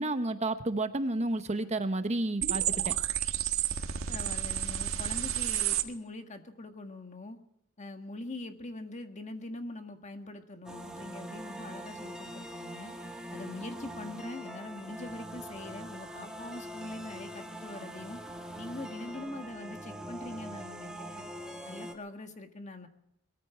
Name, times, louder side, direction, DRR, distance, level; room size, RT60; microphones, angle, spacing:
voice 1, 0.0-2.9, right 2 dB, 35° right, 9 dB, 0.9 m, -31 dB
sound 1, 2.4-5.8, right 10 dB, 75° right, 1.6 m, -31 dB
voice 2, 4.1-7.4 7.8-12.9 13.3-18.2 18.6-21.3 21.6-22.9, left 2 dB, 35° left, 6 dB, 1.7 m, -43 dB
sound 2, 10.7-21.9, equal, 5° right, 1.9 m, -43 dB
21.5 x 14.5 x 4.5 m, 0.75 s
head